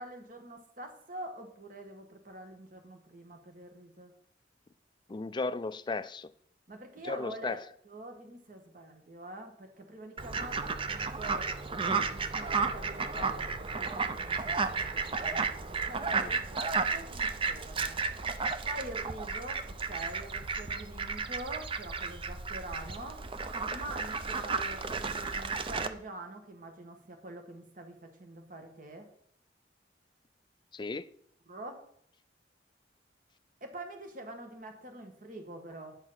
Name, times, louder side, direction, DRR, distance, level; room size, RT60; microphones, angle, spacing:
voice 1, 0.0-4.1 6.7-15.0 15.2-18.0 18.7-23.2 23.7-29.1 31.5-31.8 33.6-36.0, right 1 dB, 45° right, 5 dB, 1.5 m, -45 dB
voice 2, 5.1-6.3 7.0-7.6 16.2-16.3 30.7-31.1, left 3 dB, 25° left, 14 dB, 0.4 m, -35 dB
Fowl, 10.2-25.9, right 4 dB, 30° right, 0.6 m, -33 dB
9.8 x 5.6 x 6.2 m, 0.64 s
head